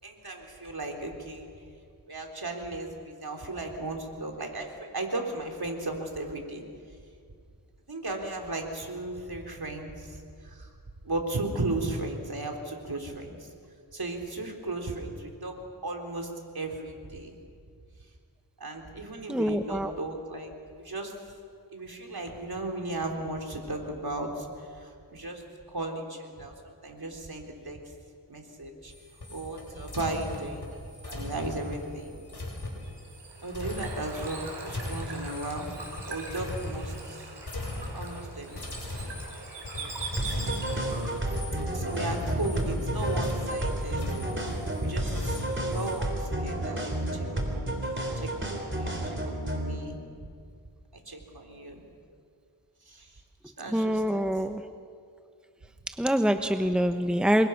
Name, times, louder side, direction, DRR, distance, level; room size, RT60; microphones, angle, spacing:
voice 1, 0.0-1.4 2.1-6.6 7.9-10.7 11.0-13.5 13.9-17.4 18.6-21.1 21.7-25.4 25.7-27.8 28.3-28.9 29.3-32.1 33.4-35.7 36.1-37.3 37.9-39.1 39.8-39.9 41.7-44.4 44.8-50.0 51.1-51.8 52.9-53.2 53.6-54.2, right 2 dB, 60° right, 2 dB, 3.9 m, -36 dB
voice 2, 19.3-19.9 53.7-54.6 55.9-57.5, equal, ahead, 7 dB, 1.1 m, -25 dB
sound 1, 28.9-37.2 37.4-38.3 38.5-46.1, left 2 dB, 65° left, 7.6 m, -37 dB
Bird / Water, 32.8-41.3, right 3 dB, 90° right, 4.6 m, -41 dB
sound 2, 40.2-49.8, right 1 dB, 25° right, 3.9 m, -31 dB
27.5 x 23.0 x 6.0 m, 2.3 s
wide cardioid pair, 50°, 42 cm